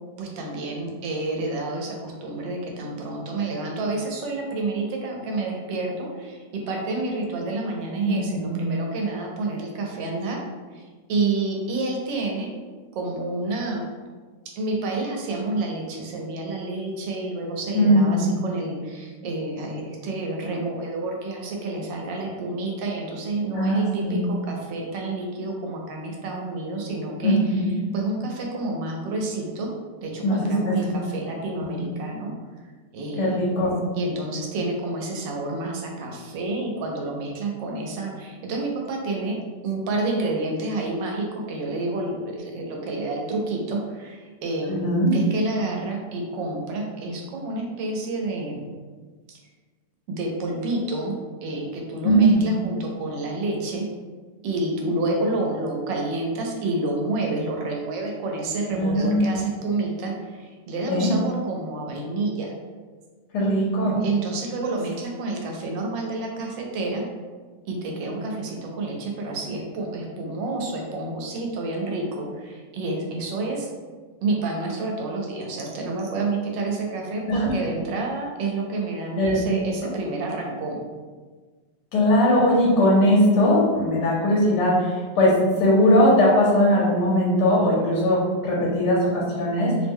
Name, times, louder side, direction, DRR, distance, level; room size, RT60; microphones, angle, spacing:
voice 1, 0.2-10.4 10.7-10.8 11.1-12.6 12.9-13.8 14.5-27.6 27.9-29.7 30.0-32.3 32.9-33.4 33.9-39.4 39.6-44.8 45.1-48.7 49.3-49.4 50.1-53.9 54.4-62.5 64.0-67.1 67.7-73.7 74.2-80.9, right 2 dB, 85° right, 0 dB, 1.3 m, -29 dB
voice 2, 8.0-8.6 17.7-18.2 23.5-24.3 27.2-27.7 30.2-30.9 31.6-31.7 33.2-33.7 44.7-45.1 52.0-52.4 58.7-59.2 60.9-61.1 63.3-64.0 77.3-77.5 79.2-79.4 81.9-89.9, equal, 70° left, -4 dB, 1.2 m, -20 dB
3.1 x 2.1 x 3.5 m, 1.4 s
omnidirectional pair, 1.9 m